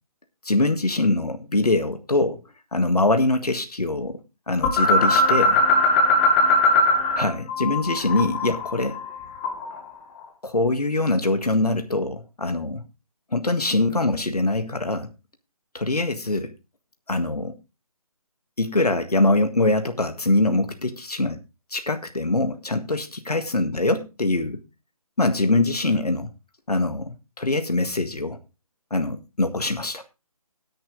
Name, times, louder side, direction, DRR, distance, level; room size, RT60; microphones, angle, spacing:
voice 1, 0.4-2.4 2.7-4.2 4.5-5.6 7.2-9.0 10.4-12.8 13.3-15.1 15.7-16.5 17.1-17.6 18.6-21.4 21.7-24.6 25.2-26.3 26.7-28.4 28.9-30.0, left 2 dB, 85° left, 7 dB, 1.7 m, -23 dB
sound 1, 4.6-7.2 7.5-9.8, left 2 dB, 20° left, 1.7 m, -20 dB
10.0 x 5.8 x 6.3 m, 0.28 s
figure-of-eight pair, 150°, 19 cm